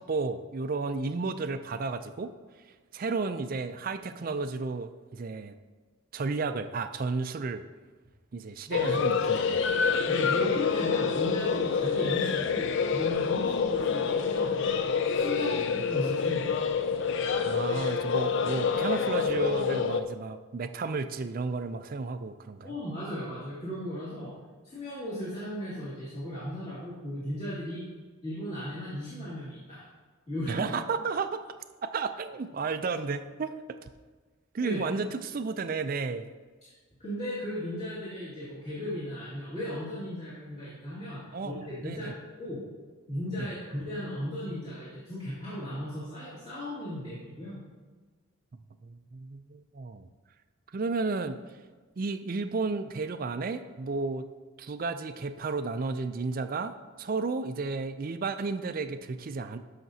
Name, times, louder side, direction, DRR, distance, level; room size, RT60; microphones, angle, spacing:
voice 1, 0.0-2.3 2.9-5.5 6.1-7.6 8.3-9.7 17.5-22.7 30.5-31.4 31.8-33.5 34.5-36.3 41.3-42.1 43.4-43.5 48.8-50.1 50.7-51.4 52.0-54.3 54.6-56.7 57.0-59.6, right 4 dB, 40° right, 10 dB, 0.4 m, -32 dB
sound 1, 8.7-20.0, left 6 dB, 55° left, 0.4 m, -27 dB
voice 2, 10.1-14.8 15.1-16.6 22.6-24.3 24.7-27.8 28.2-29.8 30.3-30.7 34.6-34.8 37.0-42.6 43.1-47.6, equal, 30° left, -12 dB, 2.3 m, -36 dB
13.5 x 5.8 x 2.8 m, 1.4 s
head